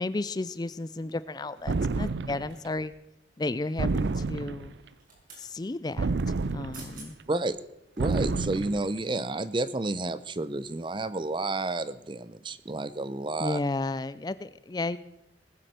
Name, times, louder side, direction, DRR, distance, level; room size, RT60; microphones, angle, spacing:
voice 1, 0.0-2.9 3.4-4.8 5.4-6.1 6.5-7.2 13.4-15.0, left 2 dB, 20° left, 15 dB, 0.4 m, -33 dB
sound 1, 1.7-2.5 3.8-4.8 6.0-7.0 8.0-8.9, right 3 dB, 70° right, 0.5 m, -29 dB
sound 2, 2.5-3.1 4.8-5.5 6.4-6.5 6.7-7.1 7.6-7.8, right 3 dB, 50° right, 5.3 m, -49 dB
voice 2, 8.0-13.6, right 2 dB, 25° right, 15 dB, 0.6 m, -30 dB
19.0 x 7.7 x 6.7 m, 0.87 s
head